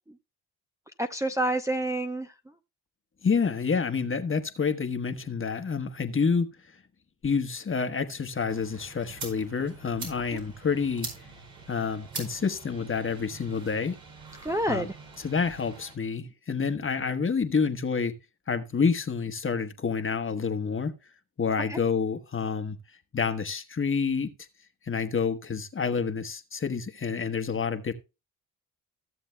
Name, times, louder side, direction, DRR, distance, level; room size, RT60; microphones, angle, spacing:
voice 1, 1.0-2.3 10.3-10.4 14.4-14.9 21.7-21.8, right 1 dB, 10° right, 0.7 m, -28 dB
voice 2, 3.2-6.5 7.2-11.1 11.7-14.0 14.7-14.9 15.2-18.2 18.5-20.9 21.4-22.8 23.1-24.3 24.9-27.9, left 5 dB, 30° left, 1.2 m, -28 dB
sound 1, 8.5-15.9, right 4 dB, 65° right, 4.8 m, -44 dB
15.5 x 7.1 x 2.2 m
supercardioid pair, 60°, 39 cm